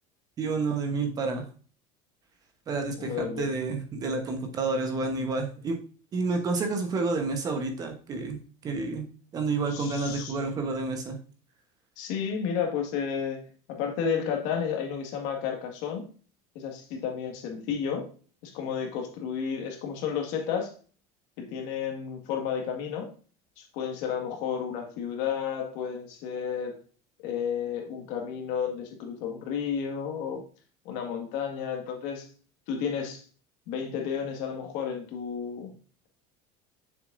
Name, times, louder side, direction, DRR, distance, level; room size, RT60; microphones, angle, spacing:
voice 1, 0.4-1.5 2.7-5.8 6.1-9.1 9.3-11.2, right 3 dB, 25° right, 5 dB, 1.0 m, -29 dB
voice 2, 3.0-3.5 9.7-10.3 12.0-16.0 16.6-18.1 18.4-20.7 21.4-23.1 23.6-26.8 27.2-30.4 30.9-32.3 32.7-33.2 33.7-35.7, left 7 dB, 60° left, 3 dB, 1.8 m, -32 dB
7.0 x 6.4 x 2.6 m, 0.40 s
cardioid pair, 160°, 14 cm